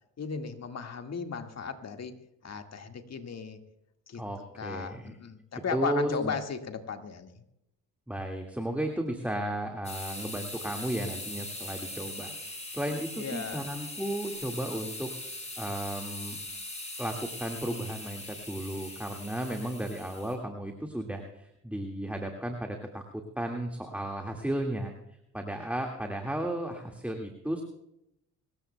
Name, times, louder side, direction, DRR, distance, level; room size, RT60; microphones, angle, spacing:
voice 1, 0.2-2.1 2.4-3.6 4.1-4.2 4.6-7.4 13.2-13.6, left 6 dB, 45° left, 5 dB, 1.9 m, -36 dB
voice 2, 4.1-5.1 5.7-6.3 8.1-15.1 15.6-16.4 17.0-24.9 25.3-27.6, right 1 dB, 5° right, 2 dB, 2.0 m, -34 dB
sound 1, 9.8-20.3, left 2 dB, 20° left, 6.2 m, -41 dB
25.5 x 14.5 x 2.3 m, 0.82 s
supercardioid pair, 60°, 37 cm